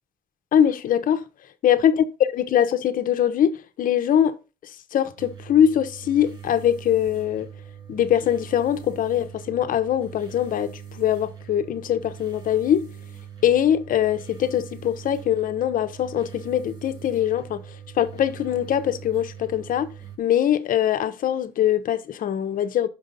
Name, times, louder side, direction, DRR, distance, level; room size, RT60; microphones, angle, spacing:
voice 1, 0.5-1.2 1.6-1.9 2.3-4.3 4.9-7.5 7.9-12.9 13.4-17.6 18.0-19.9 20.2-22.9, left 10 dB, 55° left, 0.8 m, -22 dB
sound 1, 5.2-20.2, right 8 dB, 25° right, 1.6 m, -42 dB
6.0 x 5.2 x 4.0 m
cardioid pair, 110°, 17 cm